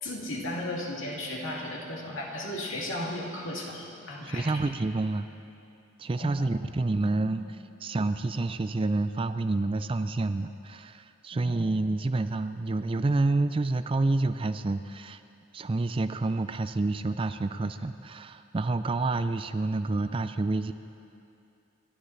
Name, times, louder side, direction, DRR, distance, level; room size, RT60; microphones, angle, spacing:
voice 1, 0.0-4.6 6.2-6.6 7.0-7.2 11.3-11.6, left 1 dB, 75° left, -3 dB, 2.6 m, -35 dB
voice 2, 4.2-5.3 6.0-7.4 7.8-15.2 15.5-20.7, right 2 dB, 25° right, 10 dB, 0.4 m, -28 dB
29.5 x 12.5 x 3.3 m, 2.7 s
head